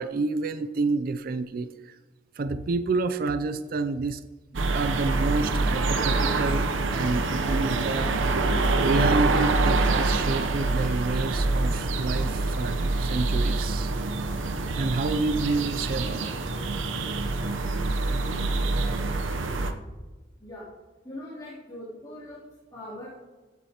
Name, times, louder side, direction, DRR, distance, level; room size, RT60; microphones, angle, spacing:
voice 1, 0.0-2.0 2.4-4.2 4.5-8.1 8.8-13.9 14.4-16.4, right 3 dB, 50° right, 11 dB, 0.4 m, -29 dB
sound 1, 4.5-19.7, right 3 dB, 85° right, 0.8 m, -26 dB
voice 2, 20.4-20.7 21.0-23.1, left 1 dB, 20° left, -11 dB, 3.0 m, -41 dB
15.5 x 8.0 x 2.9 m, 1.3 s
head